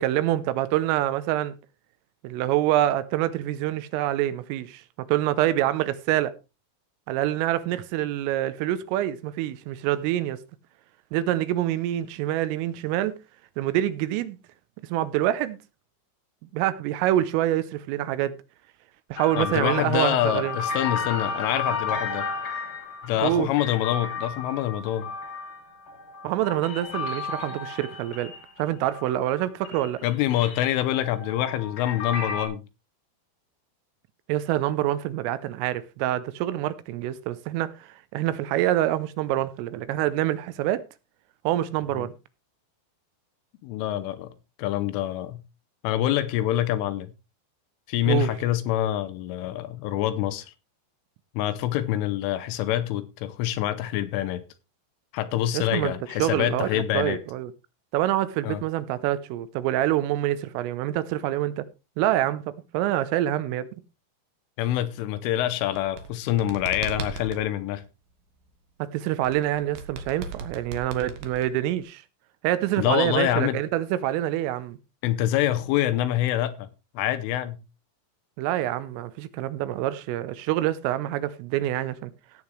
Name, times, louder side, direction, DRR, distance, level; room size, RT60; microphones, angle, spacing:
voice 1, 0.0-1.6 2.2-4.8 5.1-6.3 7.1-10.4 11.1-13.1 13.6-14.4 14.8-15.6 16.5-18.3 19.1-20.6 23.2-23.5 26.2-28.3 28.6-30.0 34.3-40.8 41.4-42.1 48.1-48.3 55.5-55.9 56.2-57.5 57.9-61.7 62.0-63.7 68.8-72.0 72.4-74.8 78.4-82.1, right 13 dB, 80° right, 3.4 m, -26 dB
sound 1, 19.2-29.4 29.6-32.5, left 4 dB, 50° left, 4.2 m, -33 dB
voice 2, 19.4-22.3 23.0-25.1 30.0-32.6 41.9-42.1 43.6-44.3 44.6-45.4 45.8-47.1 47.9-50.5 51.4-54.4 55.1-57.2 58.4-58.6 64.6-67.8 72.8-73.6 75.0-76.7 77.0-77.6, left 13 dB, 80° left, 3.3 m, -26 dB
sound 2, 65.6-67.4 69.2-71.8, right 4 dB, 65° right, 2.5 m, -37 dB
17.0 x 8.6 x 3.3 m
omnidirectional pair, 5.9 m